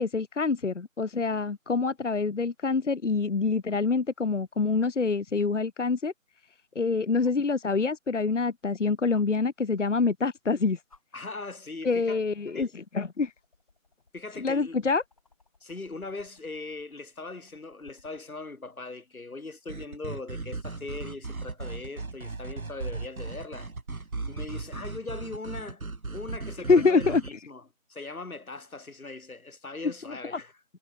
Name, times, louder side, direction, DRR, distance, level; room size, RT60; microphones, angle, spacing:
voice 1, 0.0-6.1 6.7-10.8 11.8-13.3 14.4-15.0 26.7-27.2 30.1-30.4, left 4 dB, 60° left, 0.9 m, -26 dB
sound 1, 7.2-7.5 9.1-9.3 10.4-10.5 10.9-11.0 12.0-12.2 12.6-18.3 19.9-20.0, left 3 dB, 25° left, 3.1 m, -60 dB
voice 2, 11.1-12.2 12.5-12.7 14.1-14.9 15.6-23.7 24.3-25.9 26.1-30.5, left 3 dB, 85° left, 2.4 m, -40 dB
sound 2, 19.7-27.3, right 3 dB, 80° right, 2.0 m, -37 dB
figure-of-eight pair, 175°, 42 cm